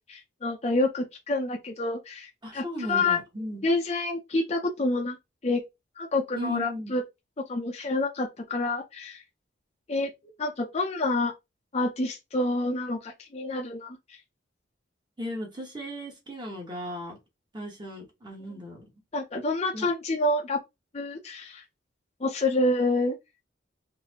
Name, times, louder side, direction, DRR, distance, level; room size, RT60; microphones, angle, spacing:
voice 1, 0.1-3.2 3.6-5.2 5.4-5.6 6.0-7.0 7.5-9.2 9.9-10.1 10.4-11.3 11.7-14.2 19.1-20.6 20.9-21.6 22.2-23.2, left 2 dB, 35° left, 0.5 m, -28 dB
voice 2, 2.4-3.7 6.4-6.9 15.2-17.2 17.5-18.8 19.7-19.9, equal, 25° right, 1.1 m, -36 dB
4.0 x 2.6 x 2.8 m
head